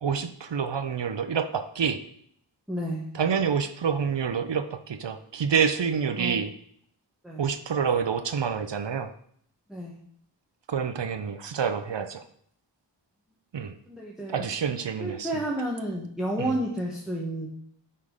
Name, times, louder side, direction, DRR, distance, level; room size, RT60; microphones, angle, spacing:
voice 1, 0.0-2.0 3.1-6.5 7.4-9.1 10.7-12.2 13.5-13.7 14.3-15.4 16.4-16.5, right 6 dB, 70° right, 9 dB, 0.7 m, -27 dB
voice 2, 2.7-3.1 6.2-6.3 7.2-7.5 9.7-10.0 13.9-14.4 15.0-17.5, right 1 dB, ahead, -3 dB, 1.4 m, -31 dB
8.3 x 3.8 x 4.9 m, 0.64 s
wide cardioid pair, 60°, 44 cm